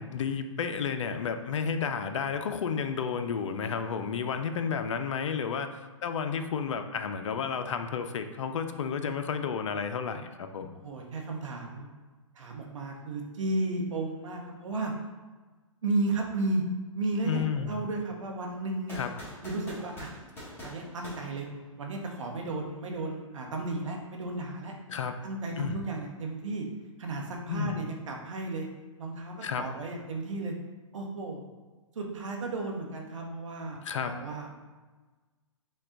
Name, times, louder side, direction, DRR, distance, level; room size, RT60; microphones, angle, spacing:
voice 1, 0.0-10.7 17.2-17.8 18.9-19.1 24.9-25.2 25.6-25.8 27.5-27.8 29.4-29.7 33.8-34.2, left 6 dB, 70° left, 7 dB, 0.5 m, -32 dB
voice 2, 10.8-11.9 12.3-14.9 15.8-16.6 16.9-19.0 19.4-20.1 20.6-21.5 21.8-24.7 25.2-26.7 27.0-28.7 29.0-30.5 30.9-31.5 31.9-34.5, right 2 dB, 70° right, 1 dB, 0.9 m, -33 dB
sound 1, 18.9-22.1, equal, 15° left, 1.5 m, -45 dB
5.4 x 2.3 x 3.7 m, 1.3 s
hypercardioid pair, 130°, 17 cm